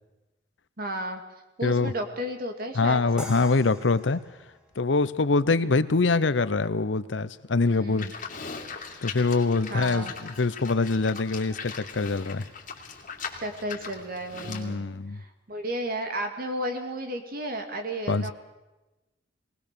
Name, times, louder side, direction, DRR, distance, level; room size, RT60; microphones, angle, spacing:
voice 1, 0.8-1.2 1.6-3.3 5.5-5.8 7.7-8.1 9.7-10.1 13.4-14.8 15.1-18.3, right 1 dB, 55° right, 6 dB, 2.4 m, -33 dB
voice 2, 2.7-4.2 4.8-8.1 9.0-12.4 14.5-15.2 18.1-18.3, left 3 dB, 75° left, 15 dB, 0.7 m, -24 dB
sound 1, 3.2-6.2, left 1 dB, 5° right, 1.9 m, -46 dB
Livestock farm animals working animals, 8.0-14.7, left 5 dB, 45° left, 2.7 m, -40 dB
sound 2, 8.5-14.5, right 2 dB, 90° right, 6.6 m, -58 dB
21.5 x 19.0 x 6.8 m, 1.0 s
head